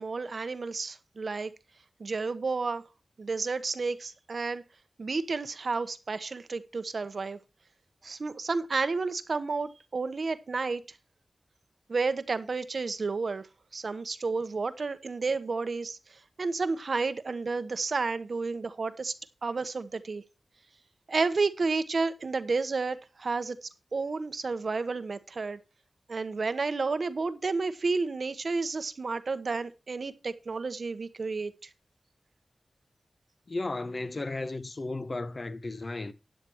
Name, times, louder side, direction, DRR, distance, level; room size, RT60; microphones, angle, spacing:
voice 1, 0.0-1.5 2.0-2.8 3.2-4.6 5.0-7.4 8.0-10.8 11.9-13.4 13.7-16.0 16.4-19.1 19.4-20.2 21.1-25.6 26.1-31.5, right 4 dB, 65° right, 1.0 m, -31 dB
voice 2, 33.5-36.1, left 2 dB, 45° left, 1.1 m, -34 dB
13.5 x 9.9 x 3.0 m
wide cardioid pair, 75°, 0 cm